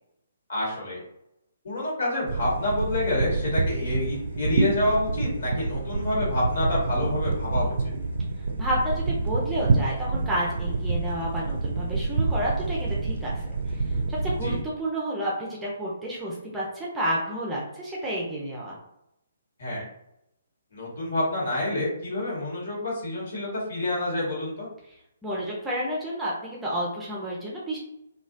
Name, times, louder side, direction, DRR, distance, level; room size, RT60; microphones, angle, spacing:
voice 1, 0.5-1.0 1.6-7.9 14.4-14.6 19.6-19.8 20.7-24.7, left 1 dB, 50° left, -5 dB, 1.5 m, -28 dB
sound 1, 2.3-14.6, right 3 dB, 55° right, 0.5 m, -27 dB
voice 2, 8.6-13.3 13.7-13.8 14.1-18.8 25.2-27.8, equal, 5° right, -5 dB, 0.7 m, -30 dB
3.0 x 2.4 x 2.6 m, 0.81 s
figure-of-eight pair, 130°, 0 cm